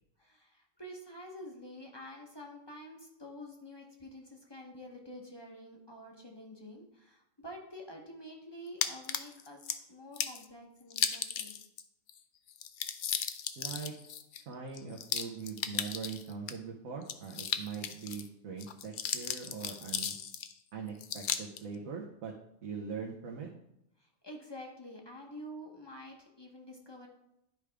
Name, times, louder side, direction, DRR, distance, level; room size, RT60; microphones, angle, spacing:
voice 1, 0.2-9.6 9.9-11.6 24.0-27.1, equal, 20° left, 1 dB, 0.9 m, -48 dB
sound 1, 8.8-9.8 10.2-10.4 10.9-11.8 12.1-12.2 12.5-16.5 17.0-18.3 18.6-20.5 21.0-21.6, left 8 dB, 75° left, 0.4 m, -35 dB
voice 2, 13.6-13.9 14.5-20.2 20.7-22.3 22.6-23.5, right 5 dB, 80° right, -1 dB, 1.3 m, -42 dB
10.5 x 4.9 x 3.4 m, 0.83 s
omnidirectional pair, 1.4 m